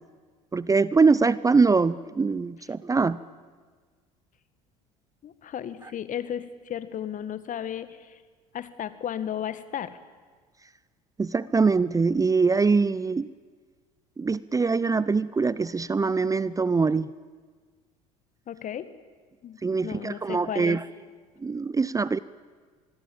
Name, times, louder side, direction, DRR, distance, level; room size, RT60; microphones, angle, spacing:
voice 1, 0.5-3.2 11.2-13.3 14.2-17.1 19.6-20.8 21.4-22.2, right 4 dB, 20° right, 18 dB, 0.7 m, -23 dB
voice 2, 5.2-8.2 8.5-10.0 18.5-18.9 19.4-20.8, left 9 dB, 45° left, 13 dB, 1.8 m, -34 dB
26.0 x 21.0 x 8.8 m, 1.5 s
hypercardioid pair, 65°, 19 cm